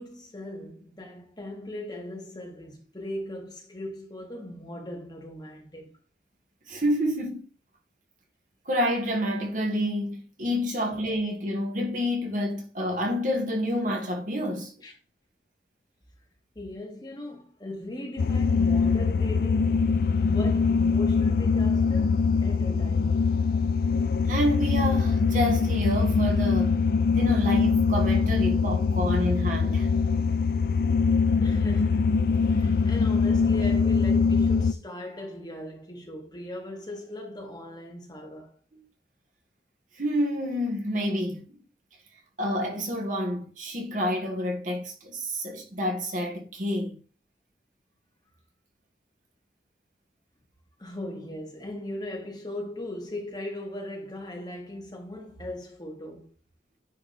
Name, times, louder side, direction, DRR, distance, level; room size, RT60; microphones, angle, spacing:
voice 1, 0.0-5.9 10.9-11.0 14.8-14.9 16.6-19.9 20.2-23.3 31.4-38.6 50.8-56.3, left 1 dB, 25° left, 1.9 m, -38 dB
voice 2, 6.7-7.5 8.6-14.7 24.3-26.8 27.1-29.9 38.7-38.8 40.0-41.6 42.4-47.0, equal, 45° right, 1.7 m, -28 dB
sound 1, 18.2-34.7, left 5 dB, 55° left, 0.4 m, -23 dB
9.9 x 3.4 x 4.2 m
head